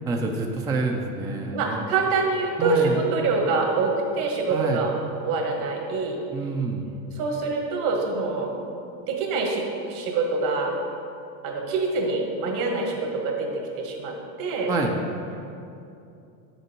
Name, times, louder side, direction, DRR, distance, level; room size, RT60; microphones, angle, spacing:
voice 1, 0.1-1.8 2.6-3.0 4.5-4.8 6.3-6.9 14.7-14.9, right 3 dB, 10° right, 2 dB, 0.3 m, -27 dB
voice 2, 1.5-4.9 5.2-6.2 7.2-8.5 9.1-10.7 11.4-13.5 13.8-14.7, right 3 dB, 65° right, 1 dB, 1.8 m, -25 dB
7.5 x 6.8 x 4.4 m, 2.7 s
supercardioid pair, 105°, 47 cm